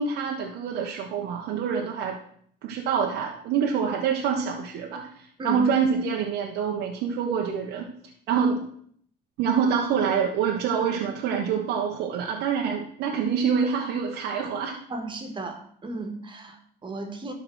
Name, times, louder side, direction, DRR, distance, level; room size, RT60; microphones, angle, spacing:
voice 1, 0.0-2.2 2.6-7.9 8.3-8.6 9.4-14.7, right 6 dB, 85° right, 0 dB, 1.3 m, -26 dB
voice 2, 14.9-17.3, right 2 dB, 30° right, 5 dB, 1.9 m, -35 dB
12.5 x 4.3 x 6.3 m, 0.62 s
cardioid pair, 110°, 17 cm